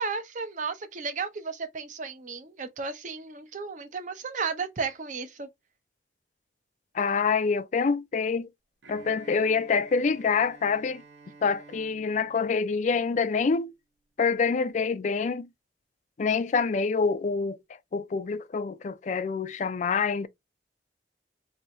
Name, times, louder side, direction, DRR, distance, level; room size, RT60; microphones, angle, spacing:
voice 1, 0.0-5.5, right 5 dB, 45° right, 0.6 m, -34 dB
voice 2, 6.9-8.5 8.9-11.0 11.4-13.7 14.2-15.5 16.2-17.6 17.9-20.3, left 5 dB, 40° left, 0.3 m, -26 dB
Bowed string instrument, 8.8-13.7, right 4 dB, 85° right, 1.0 m, -52 dB
2.8 x 2.7 x 4.3 m
head